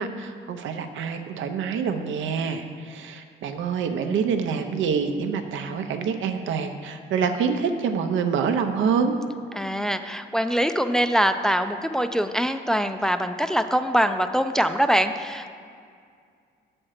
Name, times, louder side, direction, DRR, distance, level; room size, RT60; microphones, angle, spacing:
voice 1, 0.0-9.1, right 6 dB, 75° right, 7 dB, 0.6 m, -26 dB
voice 2, 9.5-15.5, equal, 5° left, 8 dB, 0.3 m, -23 dB
7.6 x 4.3 x 6.4 m, 2.2 s
cardioid pair, 90°, 20 cm